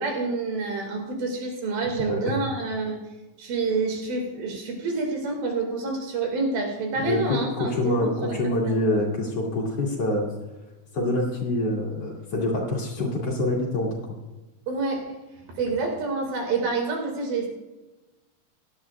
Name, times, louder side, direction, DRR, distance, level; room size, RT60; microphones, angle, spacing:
voice 1, 0.0-3.0 3.4-8.4 8.7-8.9 14.7-15.2 15.6-17.5, right 3 dB, 75° right, 2 dB, 3.9 m, -28 dB
voice 2, 2.0-2.3 7.0-10.3 10.9-14.2, left 1 dB, 45° left, -2 dB, 3.0 m, -26 dB
17.0 x 12.0 x 2.4 m, 1.1 s
omnidirectional pair, 4.2 m